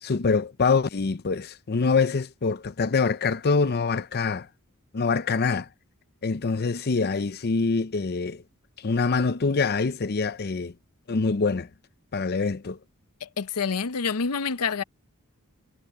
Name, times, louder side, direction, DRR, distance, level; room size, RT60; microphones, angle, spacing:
voice 1, 0.0-4.5 4.9-5.7 6.2-8.4 8.8-10.7 11.1-11.7 12.1-12.8, left 4 dB, 45° left, 0.6 m, -25 dB
voice 2, 13.2-14.8, left 5 dB, 90° left, 0.7 m, -27 dB
head